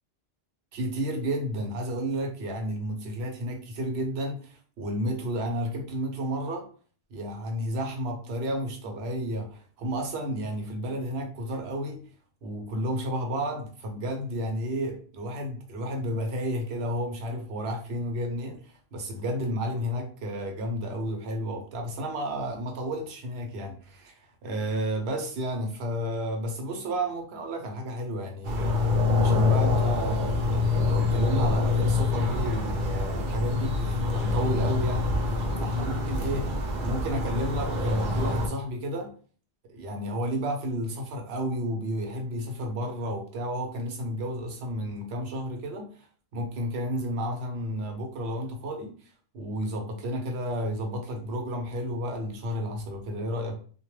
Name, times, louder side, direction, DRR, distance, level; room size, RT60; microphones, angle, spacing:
voice 1, 0.7-6.7 7.1-12.0 12.4-36.5 36.8-39.1 39.7-46.1 46.3-53.6, equal, 80° right, 3 dB, 0.9 m, -32 dB
sound 1, 28.4-38.5, left 3 dB, 60° right, 0.6 m, -26 dB
2.2 x 2.1 x 3.0 m, 0.43 s
omnidirectional pair, 1.1 m